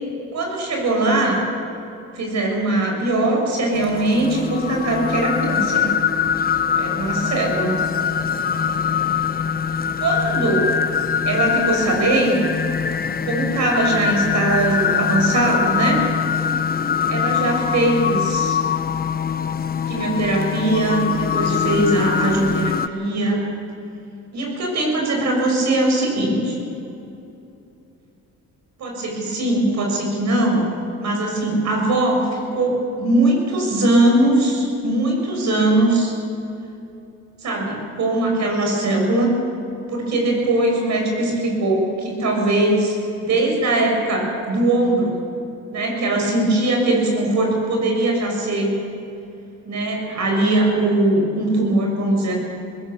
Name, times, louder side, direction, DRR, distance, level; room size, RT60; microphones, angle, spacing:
voice 1, 0.3-1.4 2.1-5.9 6.8-7.8 10.0-10.7 11.3-12.5 13.3-16.1 17.1-18.6 19.9-23.4 24.3-26.6 28.8-30.6 31.0-36.1 37.4-39.4 39.9-42.9 43.2-45.2 45.7-48.8 49.6-52.3, right 2 dB, 65° right, 0 dB, 6.6 m, -20 dB
sound 1, 3.7-22.9, left 7 dB, 30° left, 0.9 m, -23 dB
20.5 x 18.0 x 7.2 m, 2.8 s
cardioid pair, 90°, 30 cm